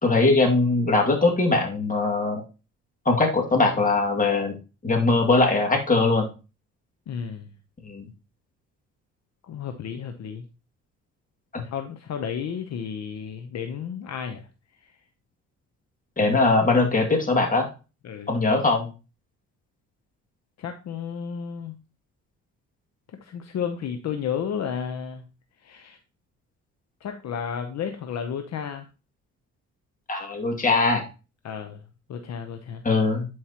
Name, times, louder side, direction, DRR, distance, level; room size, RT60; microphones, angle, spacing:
voice 1, 0.0-2.4 3.1-4.5 4.8-6.3 7.8-8.1 11.5-11.6 16.2-17.7 18.3-18.9 30.1-31.0 32.8-33.3, left 3 dB, 25° left, 1 dB, 2.3 m, -21 dB
voice 2, 7.1-7.5 9.4-10.5 11.6-14.5 14.8-15.0 18.0-18.3 20.6-21.8 23.1-25.3 25.6-26.0 27.0-28.9 31.4-31.8 32.1-32.8, left 7 dB, 60° left, 6 dB, 0.8 m, -32 dB
11.0 x 4.8 x 2.9 m, 0.31 s
cardioid pair, 90°, 30 cm